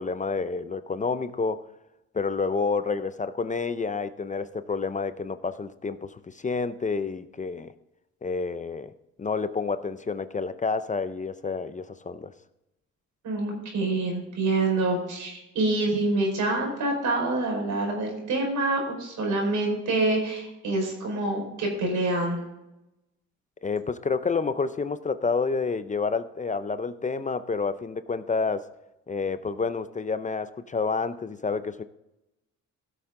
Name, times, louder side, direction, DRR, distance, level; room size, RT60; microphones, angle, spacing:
voice 1, 0.0-1.6 2.1-7.7 8.2-8.9 9.2-12.3 23.6-28.7 29.1-31.8, left 4 dB, 25° left, 12 dB, 0.6 m, -29 dB
voice 2, 13.2-22.4, right 2 dB, 75° right, 1 dB, 4.8 m, -26 dB
16.5 x 7.1 x 3.8 m, 0.92 s
cardioid pair, 90°, 30 cm